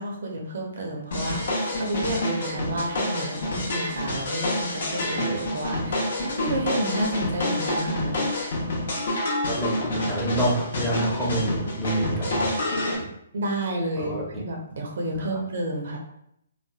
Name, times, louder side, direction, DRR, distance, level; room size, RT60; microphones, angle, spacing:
voice 1, 0.0-8.2 13.3-16.0, right 1 dB, 65° right, 1 dB, 0.6 m, -31 dB
sound 1, 1.1-13.0, left 1 dB, 60° left, 0.7 m, -27 dB
voice 2, 9.5-12.5 14.0-14.2, right 1 dB, 5° left, -7 dB, 0.7 m, -27 dB
3.2 x 2.1 x 2.3 m, 0.76 s
figure-of-eight pair, 135°, 0 cm